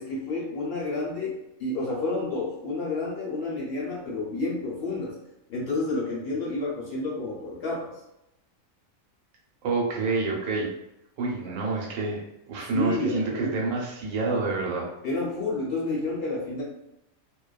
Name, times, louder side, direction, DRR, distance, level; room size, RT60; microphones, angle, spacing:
voice 1, 0.0-5.1 5.5-7.9 12.7-13.6 15.0-16.6, left 2 dB, 55° left, -4 dB, 0.7 m, -30 dB
voice 2, 9.6-10.7 11.2-12.2 12.5-14.9, right 3 dB, 75° right, -2 dB, 1.0 m, -28 dB
2.4 x 2.2 x 2.3 m, 0.86 s
omnidirectional pair, 1.5 m